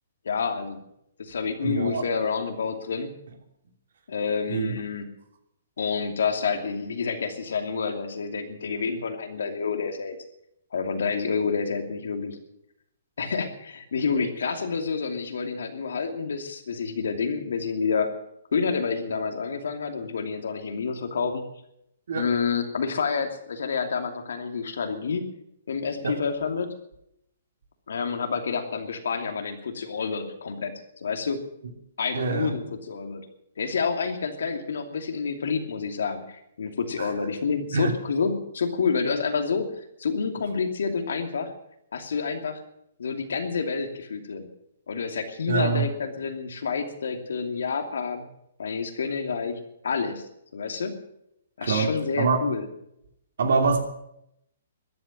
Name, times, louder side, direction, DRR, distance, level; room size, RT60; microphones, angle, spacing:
voice 1, 0.2-0.8 1.2-3.1 4.1-5.1 5.8-10.2 10.7-12.4 13.2-18.1 18.5-21.5 22.2-25.2 25.7-26.7 27.9-31.4 32.0-33.2 33.6-41.5 41.9-42.6 43.0-44.5 44.9-48.3 48.6-49.5 49.8-50.3 50.5-51.0 51.6-52.6, left 5 dB, 80° left, 6 dB, 2.7 m, -28 dB
voice 2, 1.6-2.0 4.5-4.7 22.1-22.3 26.0-26.2 32.1-32.5 37.0-37.1 37.7-37.9 45.5-45.8 51.6-51.9 52.2-52.4 53.4-53.8, right 5 dB, 70° right, 6 dB, 2.9 m, -24 dB
14.0 x 10.5 x 9.0 m, 0.78 s
hypercardioid pair, 145°, 0 cm